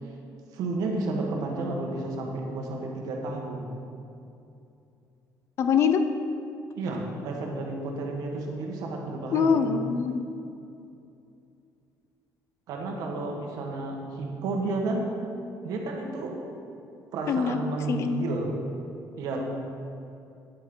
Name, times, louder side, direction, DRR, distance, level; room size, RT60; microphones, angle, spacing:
voice 1, 0.5-3.7 6.7-9.6 12.7-15.1 15.6-16.3 17.1-18.5 19.2-19.4, right 2 dB, 65° right, 1 dB, 1.3 m, -31 dB
voice 2, 5.6-6.0 9.3-10.2 17.3-17.6 17.9-18.1, left 6 dB, 40° left, 8 dB, 0.4 m, -23 dB
9.4 x 8.3 x 3.8 m, 2.6 s
cardioid pair, 175°, 7 cm